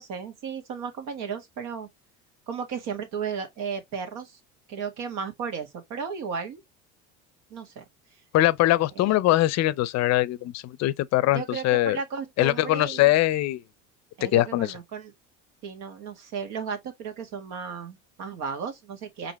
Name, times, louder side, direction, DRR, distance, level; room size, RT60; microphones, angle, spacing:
voice 1, 0.0-1.9 2.5-4.4 4.7-6.6 7.5-7.8 8.1-8.2 9.0-9.2 11.3-13.1 14.2-15.1 15.6-19.3, right 6 dB, 65° right, 1.8 m, -34 dB
voice 2, 8.3-12.0 12.4-13.6 14.2-14.8, left 16 dB, 50° left, 0.6 m, -22 dB
5.1 x 2.9 x 2.9 m
supercardioid pair, 95°, 33 cm